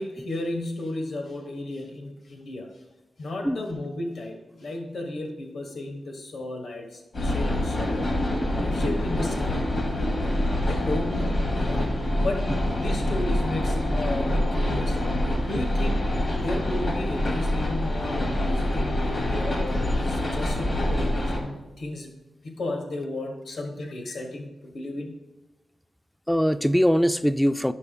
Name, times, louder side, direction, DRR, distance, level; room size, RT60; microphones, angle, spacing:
voice 1, 0.0-2.7 3.2-8.1 8.6-9.7 10.7-15.0 15.5-16.0 16.4-22.1 22.4-25.2, left 2 dB, 75° left, 2 dB, 1.2 m, -34 dB
sound 1, 7.1-21.4, left 1 dB, 50° left, 2.4 m, -25 dB
voice 2, 26.3-27.7, equal, 5° left, 12 dB, 0.3 m, -22 dB
16.5 x 5.5 x 2.3 m, 1.1 s
wide cardioid pair, 145°, 0 cm